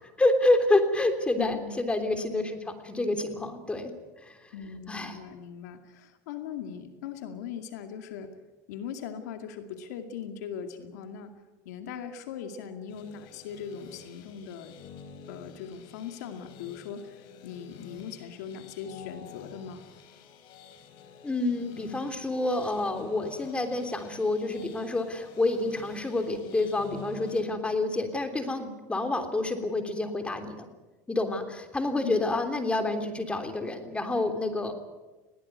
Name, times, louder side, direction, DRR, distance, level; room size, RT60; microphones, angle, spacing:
voice 1, 0.0-3.9 4.2-4.4 4.9-5.2 21.2-30.7 31.1-34.7, left 2 dB, 15° left, 7 dB, 3.3 m, -28 dB
voice 2, 1.4-1.8 4.5-8.3 8.7-11.3 11.7-14.8 15.3-19.8 32.0-32.1, left 8 dB, 90° left, 6 dB, 2.3 m, -39 dB
sound 1, 12.9-27.4, left 6 dB, 65° left, 4.1 m, -49 dB
20.5 x 18.0 x 9.6 m, 1.2 s
supercardioid pair, 120°, 9 cm